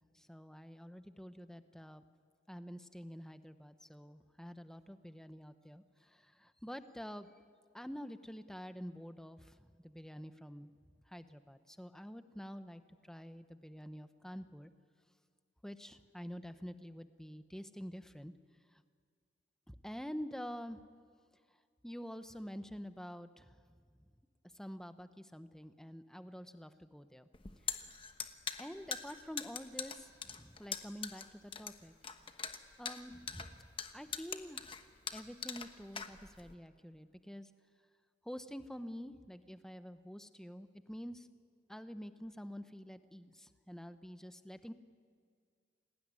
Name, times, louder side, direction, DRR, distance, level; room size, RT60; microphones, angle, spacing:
voice 1, 0.1-2.0 2.5-7.3 7.7-10.7 11.1-14.7 15.6-18.3 18.7-18.8 19.7-20.8 21.8-23.8 24.5-27.3 28.6-31.9 32.2-32.3 32.8-33.7 33.9-34.8 35.1-37.5 38.2-41.3 41.7-44.7, equal, 5° left, 10 dB, 0.9 m, -48 dB
sound 1, 27.3-36.5, left 6 dB, 30° left, 1.2 m, -42 dB
28.5 x 19.0 x 9.8 m, 2.1 s
head